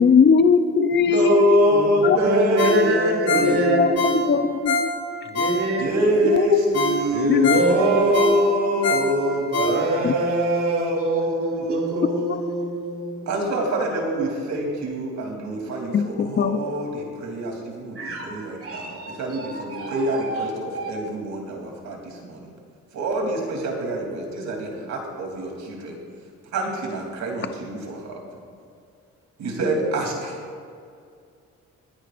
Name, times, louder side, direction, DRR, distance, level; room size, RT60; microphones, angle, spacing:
voice 1, 0.0-1.5 2.0-2.2 3.4-4.9 6.2-6.7 7.3-7.6 10.0-10.1 12.1-12.4 15.9-16.6, left 6 dB, 35° left, 9 dB, 0.7 m, -20 dB
voice 2, 1.0-3.9 5.8-12.4 13.3-22.5 22.9-26.0 26.5-28.2 29.4-30.4, equal, 65° right, 0 dB, 3.2 m, -25 dB
voice 3, 2.2-4.1 5.3-6.3 7.1-8.2 9.6-13.3 18.0-18.3 18.6-20.9, right 2 dB, 50° right, -1 dB, 2.7 m, -26 dB
Ringtone, 2.6-6.0 6.4-6.5 6.7-10.2 10.6-10.7, left 2 dB, 60° left, 3.3 m, -25 dB
25.5 x 9.9 x 2.6 m, 2.3 s
cardioid pair, 90°, 30 cm